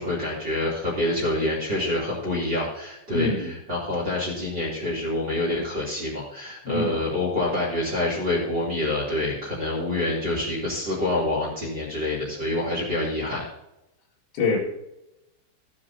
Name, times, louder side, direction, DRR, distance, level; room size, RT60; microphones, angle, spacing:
voice 1, 0.0-13.4, left 2 dB, 25° right, -3 dB, 3.1 m, -27 dB
voice 2, 3.1-3.5 6.6-7.0 14.3-14.6, left 3 dB, 70° left, -2 dB, 4.3 m, -25 dB
15.5 x 9.9 x 2.8 m, 0.88 s
omnidirectional pair, 5.6 m